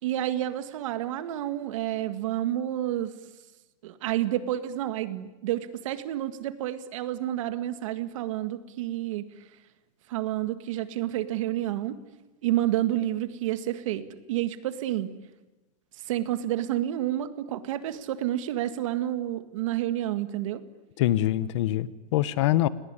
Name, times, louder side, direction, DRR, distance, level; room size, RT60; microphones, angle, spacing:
voice 1, 0.0-3.1 3.8-9.3 10.1-12.0 12.4-15.2 16.1-20.6, right 13 dB, 60° right, 11 dB, 1.9 m, -29 dB
voice 2, 21.0-22.7, left 14 dB, 55° left, 17 dB, 1.2 m, -24 dB
30.0 x 19.5 x 9.9 m, 1.1 s
supercardioid pair, 175°, 19 cm